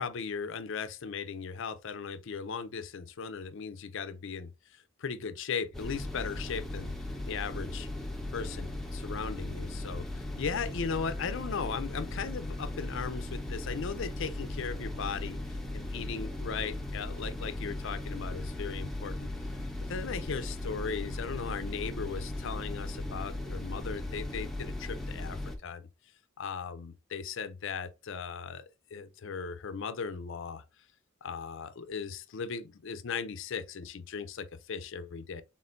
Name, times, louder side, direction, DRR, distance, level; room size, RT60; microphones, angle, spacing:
voice 1, 0.0-6.9 7.3-7.9 8.3-19.3 19.9-25.8 26.4-28.6 28.9-30.6 31.2-35.4, left 5 dB, 65° left, 0.5 m, -37 dB
sound 1, 5.7-25.6, left 1 dB, ahead, 0.6 m, -37 dB
4.2 x 3.6 x 2.5 m
head